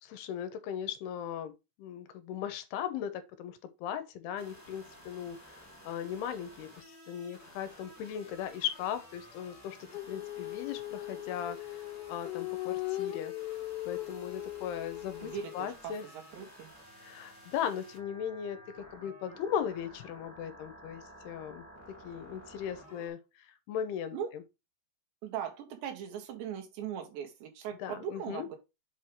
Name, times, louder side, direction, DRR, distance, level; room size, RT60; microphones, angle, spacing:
voice 1, 0.0-1.5 1.8-13.3 13.9-16.0 16.4-16.5 17.0-18.6 18.9-21.7 22.0-24.4 27.8-28.5, left 9 dB, 80° left, 2.7 m, -38 dB
sound 1, 4.4-23.1, equal, 5° left, 1.1 m, -53 dB
Female singing, 9.9-15.6, left 16 dB, 60° left, 2.8 m, -39 dB
voice 2, 15.2-15.9 16.3-16.7 24.1-24.3 25.2-28.6, right 9 dB, 80° right, 3.9 m, -39 dB
7.8 x 4.6 x 3.6 m
omnidirectional pair, 5.0 m